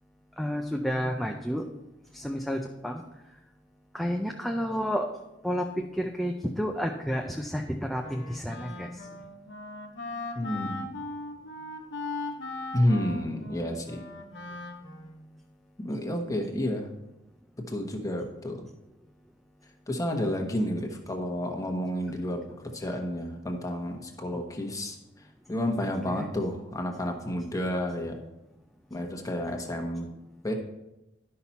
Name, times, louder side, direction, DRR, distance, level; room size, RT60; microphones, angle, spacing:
voice 1, 0.4-1.6 2.1-3.0 3.9-5.1 5.4-8.9 24.3-24.4 26.1-26.3, equal, ahead, 1 dB, 0.5 m, -30 dB
Wind instrument woodwind instrument, 8.0-15.3, left 2 dB, 65° left, 1.1 m, -39 dB
voice 2, 10.3-10.9 12.7-14.1 15.8-16.9 17.7-18.7 19.9-22.4 22.7-25.0 25.5-28.2 28.9-30.1 30.4-30.5, left 1 dB, 20° left, 3 dB, 1.1 m, -30 dB
11.5 x 5.7 x 4.1 m, 0.94 s
head